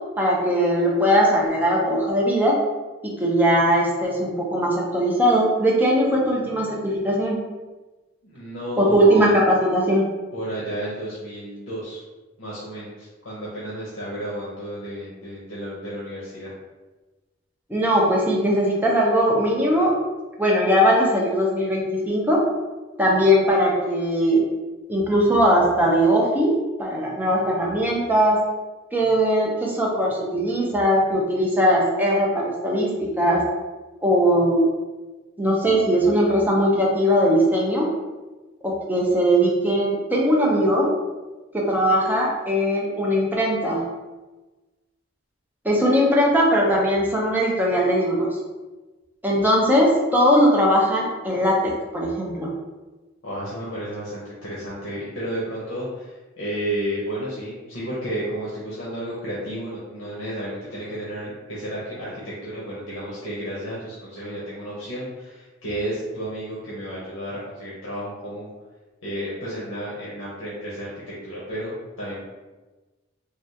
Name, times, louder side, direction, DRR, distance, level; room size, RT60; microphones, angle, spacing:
voice 1, 0.2-2.6 3.2-7.4 8.8-10.1 17.7-19.9 20.4-22.4 23.0-24.4 24.9-28.4 28.9-33.4 34.0-34.6 35.4-37.9 38.6-40.9 41.5-43.8 45.6-48.3 49.2-52.5, equal, 10° right, -3 dB, 0.6 m, -20 dB
voice 2, 8.2-9.3 10.3-12.0 12.4-16.5 53.2-68.5 69.0-72.2, right 1 dB, 70° left, -7 dB, 0.8 m, -32 dB
3.3 x 2.3 x 2.7 m, 1.2 s
head